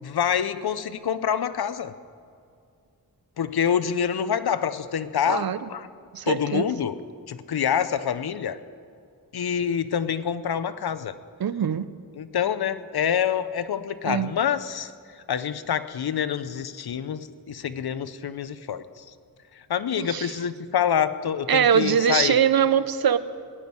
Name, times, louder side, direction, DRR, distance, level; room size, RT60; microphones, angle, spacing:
voice 1, 0.0-1.9 3.4-5.9 6.3-7.0 7.3-8.6 9.3-11.1 12.1-19.0 19.5-22.4, left 8 dB, 90° left, 13 dB, 0.7 m, -26 dB
voice 2, 5.3-5.6 6.1-6.7 11.4-11.9 14.0-14.3 20.0-20.3 21.5-23.2, right 8 dB, 75° right, 14 dB, 0.7 m, -22 dB
18.0 x 7.2 x 9.5 m, 2.4 s
wide cardioid pair, 70°, 37 cm